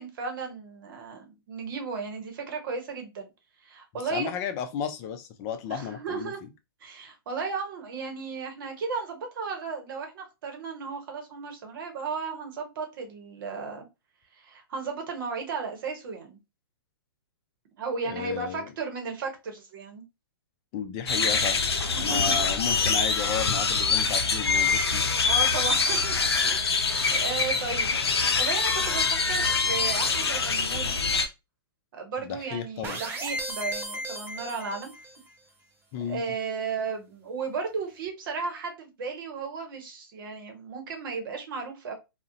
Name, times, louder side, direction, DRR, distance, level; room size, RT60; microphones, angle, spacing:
voice 1, 0.0-3.3 3.6-4.3 5.7-6.4 6.8-13.9 14.3-16.4 17.8-20.0 21.9-22.4 25.2-26.2 26.4-26.6 26.9-28.0 28.4-31.0 31.9-34.9 36.0-41.9, right 5 dB, 60° right, 0.8 m, -35 dB
voice 2, 3.9-6.5 18.1-18.7 20.7-21.6 22.0-25.0 32.2-33.0 35.9-36.2, left 8 dB, 35° left, 0.4 m, -33 dB
sound 1, 21.1-31.3, left 4 dB, 90° left, 0.5 m, -25 dB
sound 2, 32.8-35.3, right 1 dB, 15° right, 0.5 m, -35 dB
2.4 x 2.1 x 2.6 m
hypercardioid pair, 125°, 13 cm